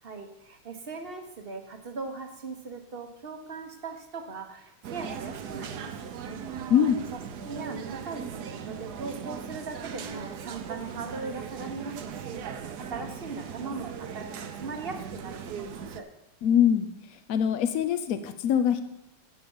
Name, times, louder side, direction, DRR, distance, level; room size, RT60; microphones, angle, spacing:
voice 1, 0.0-6.4 7.1-12.4 12.8-16.1, right 4 dB, 40° right, 5 dB, 0.8 m, -39 dB
sound 1, 4.8-16.0, right 7 dB, 60° right, 1.1 m, -39 dB
voice 2, 6.7-7.0 16.4-16.9 17.3-18.8, left 9 dB, 75° left, 11 dB, 0.8 m, -23 dB
11.5 x 8.5 x 5.5 m, 0.92 s
omnidirectional pair, 2.4 m